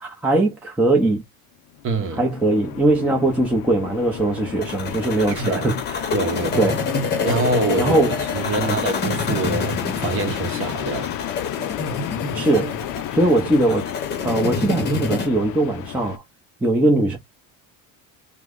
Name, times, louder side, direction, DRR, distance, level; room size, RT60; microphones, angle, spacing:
voice 1, 0.0-1.2 2.2-6.1 6.6-6.8 7.8-8.2 8.6-8.8 12.3-12.8 13.1-13.9 14.2-16.2 16.6-17.2, right 2 dB, 5° right, 0.5 m, -20 dB
sound 1, 1.7-16.2, left 13 dB, 55° left, 0.5 m, -32 dB
voice 2, 1.8-2.3 5.3-5.7 6.1-6.7 7.2-11.1, right 3 dB, 35° right, 0.8 m, -25 dB
sound 2, 4.6-15.3, left 4 dB, 30° left, 0.9 m, -28 dB
2.9 x 2.1 x 3.5 m
cardioid pair, 165°, 36 cm